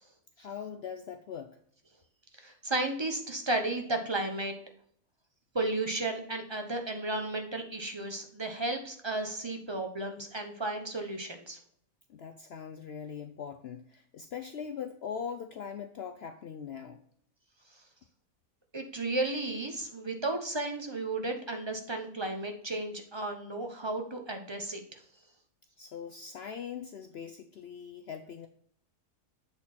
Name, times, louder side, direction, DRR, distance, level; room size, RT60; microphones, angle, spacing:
voice 1, 0.4-1.6 12.1-17.0 25.8-28.5, left 7 dB, 70° left, 6 dB, 0.6 m, -41 dB
voice 2, 2.4-4.5 5.5-11.6 18.7-24.8, right 2 dB, 25° right, 4 dB, 0.7 m, -33 dB
8.0 x 4.3 x 4.1 m, 0.63 s
omnidirectional pair, 1.6 m